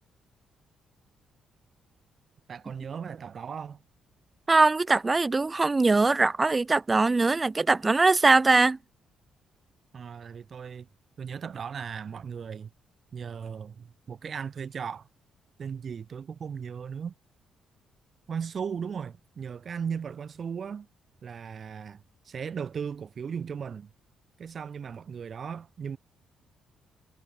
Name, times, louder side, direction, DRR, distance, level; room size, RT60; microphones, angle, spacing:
voice 1, 2.5-3.8 9.9-10.9 11.2-12.7 13.1-15.1 15.6-17.1 18.3-20.9 21.2-23.9 24.4-26.0, right 7 dB, 50° right, 6.0 m, -37 dB
voice 2, 4.5-8.8, right 3 dB, 25° right, 1.1 m, -22 dB
cardioid pair, 90°, 0 cm